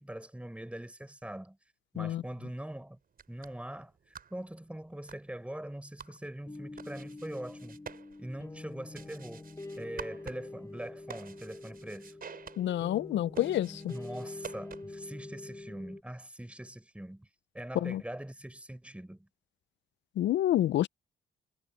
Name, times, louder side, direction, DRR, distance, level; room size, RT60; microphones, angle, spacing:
voice 1, 0.0-1.6 1.9-3.0 3.3-3.9 4.3-7.8 8.2-9.5 9.8-12.2 13.7-17.3 17.5-19.3, right 1 dB, 5° right, 4.7 m, -42 dB
sound 1, 3.0-15.1, right 6 dB, 45° right, 5.7 m, -50 dB
sound 2, 6.5-16.0, left 2 dB, 15° left, 3.3 m, -46 dB
voice 2, 12.6-13.9 17.8-18.0 20.2-20.9, left 13 dB, 65° left, 0.6 m, -28 dB
cardioid pair, 90°, 20 cm